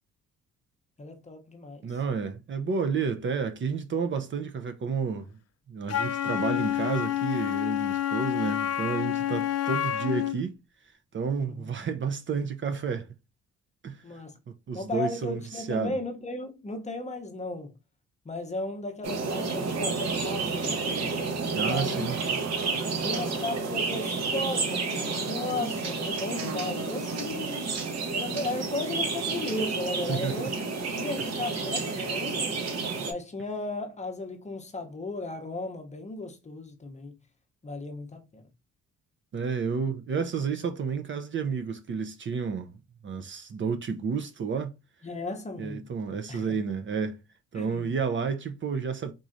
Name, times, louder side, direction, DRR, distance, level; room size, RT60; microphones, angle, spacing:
voice 1, 1.0-1.9 11.4-11.9 14.0-14.4 14.7-17.7 18.2-20.8 21.6-22.1 23.0-27.7 28.1-30.6 30.9-32.5 33.0-37.2 37.6-38.4 45.0-45.9 46.3-46.6 47.5-47.9, left 2 dB, 25° left, 0.8 m, -35 dB
voice 2, 1.8-5.4 5.7-10.6 11.1-13.1 13.8-14.0 14.7-16.0 21.5-22.2 30.1-30.5 39.3-42.7 43.0-44.7 45.6-47.2 47.5-49.1, right 5 dB, 40° right, 0.6 m, -31 dB
Wind instrument woodwind instrument, 5.9-10.4, left 12 dB, 55° left, 0.5 m, -28 dB
sound 1, 19.0-33.1, right 4 dB, 60° right, 1.1 m, -30 dB
3.7 x 3.0 x 2.6 m
cardioid pair, 90°, 30 cm